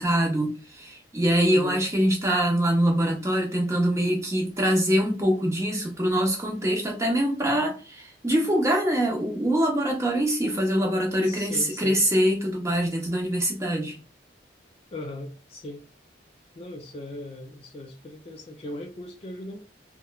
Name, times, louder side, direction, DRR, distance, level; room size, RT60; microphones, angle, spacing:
voice 1, 0.0-14.0, equal, 15° right, 0.7 m, -24 dB
voice 2, 1.5-1.8 11.2-12.0 14.9-15.9 16.6-19.6, left 1 dB, 35° left, 0.4 m, -38 dB
2.9 x 2.1 x 2.2 m
head